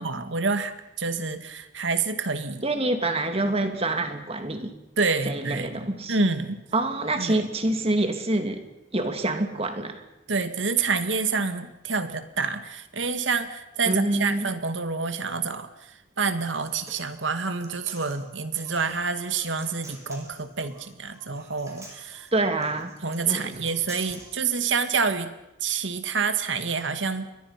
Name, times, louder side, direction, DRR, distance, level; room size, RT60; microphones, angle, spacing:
voice 1, 0.0-2.6 5.0-6.6 7.2-7.5 10.3-22.3 23.0-25.3 25.6-27.3, right 4 dB, 90° right, 9 dB, 2.0 m, -28 dB
voice 2, 2.6-4.8 5.3-6.2 6.7-8.7 8.9-10.0 13.9-14.5 22.3-22.9 23.3-23.6, right 2 dB, 35° right, 6 dB, 2.6 m, -26 dB
Human voice, 16.4-24.4, right 2 dB, 15° right, 5.9 m, -49 dB
29.5 x 23.0 x 5.9 m, 0.91 s
head